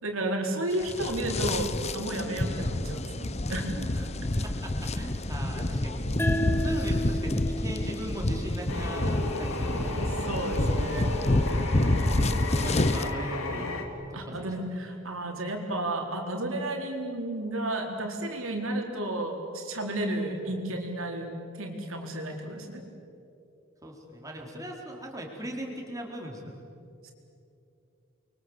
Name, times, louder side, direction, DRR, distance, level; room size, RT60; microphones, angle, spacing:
voice 1, 0.0-3.9 6.1-6.3 10.0-11.1 14.1-22.8 27.0-27.1, right 1 dB, 75° right, 2 dB, 4.3 m, -32 dB
sound 1, 0.7-13.1, left 1 dB, 30° left, 0.9 m, -28 dB
voice 2, 4.0-6.1 6.6-10.1 12.0-13.7 14.1-14.5 20.4-20.6 23.8-26.7, right 1 dB, 15° right, 0 dB, 4.3 m, -39 dB
sound 2, 6.2-9.4, equal, 10° left, 1.3 m, -34 dB
sound 3, 8.7-13.8, left 2 dB, 80° left, 3.4 m, -34 dB
30.0 x 23.5 x 8.2 m, 2.7 s
head